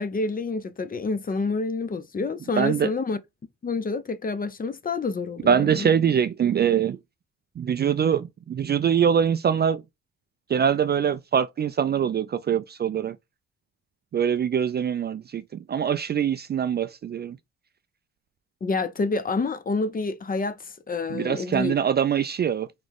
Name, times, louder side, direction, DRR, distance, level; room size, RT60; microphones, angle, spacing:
voice 1, 0.0-3.2 3.6-5.9 18.6-21.8, left 3 dB, 30° left, 0.6 m, -28 dB
voice 2, 2.6-2.9 5.4-7.0 7.6-9.8 10.5-13.2 14.1-17.4 21.1-22.7, right 8 dB, 35° right, 0.4 m, -23 dB
3.8 x 3.1 x 3.5 m
cardioid pair, 90°, 30 cm